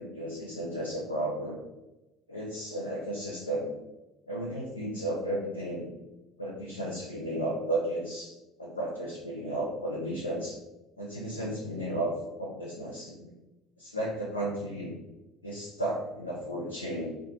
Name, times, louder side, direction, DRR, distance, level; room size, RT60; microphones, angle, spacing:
voice 1, 0.0-1.6 2.3-3.7 4.3-5.9 6.4-10.6 11.0-13.3 13.8-14.9 15.4-17.1, right 1 dB, 90° left, -4 dB, 0.4 m, -34 dB
2.4 x 2.3 x 2.8 m, 1.0 s
figure-of-eight pair, 65°, 0 cm